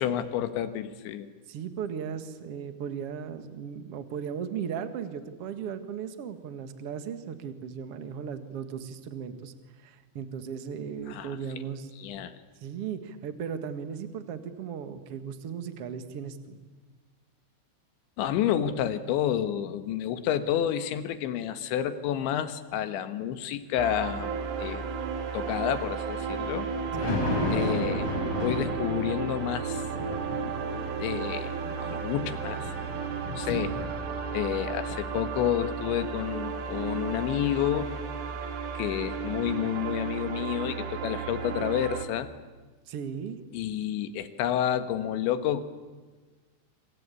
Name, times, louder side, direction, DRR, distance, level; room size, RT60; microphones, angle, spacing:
voice 1, 0.0-1.3 11.1-11.4 12.0-12.4 18.2-24.3 24.6-24.8 25.3-26.7 27.5-28.1 28.4-29.8 31.0-31.5 31.8-32.7 33.4-33.8 34.3-37.9 38.8-42.3 43.5-45.6, left 10 dB, 75° left, 10 dB, 3.6 m, -29 dB
voice 2, 1.5-9.5 9.8-11.9 12.6-16.6 26.9-27.2 33.5-33.6 42.9-43.4, right 7 dB, 60° right, 9 dB, 1.5 m, -37 dB
sound 1, 23.8-42.1, right 6 dB, 80° right, 4.8 m, -33 dB
Thunder, 26.2-34.5 34.9-35.0, left 2 dB, 40° left, 6.2 m, -34 dB
27.5 x 26.0 x 8.5 m, 1.3 s
omnidirectional pair, 5.5 m